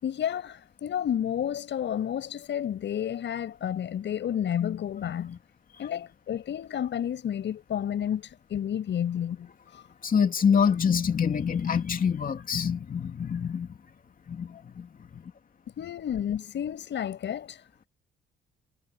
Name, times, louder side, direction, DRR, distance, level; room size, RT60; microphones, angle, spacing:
voice 1, 0.0-5.4 5.8-9.8 15.8-17.6, left 9 dB, 65° left, 7.1 m, -31 dB
voice 2, 10.0-13.8 14.3-15.2, left 7 dB, 45° left, 2.7 m, -26 dB
cardioid pair, 90°, 20 cm